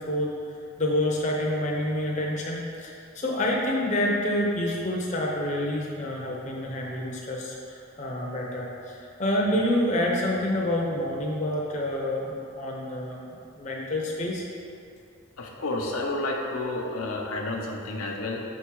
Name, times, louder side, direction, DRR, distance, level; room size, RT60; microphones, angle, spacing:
voice 1, 0.8-13.2 13.6-14.4, left 1 dB, 35° left, -3 dB, 0.7 m, -28 dB
voice 2, 15.4-18.4, left 2 dB, 85° left, 0 dB, 0.7 m, -30 dB
6.4 x 3.6 x 4.6 m, 2.5 s
head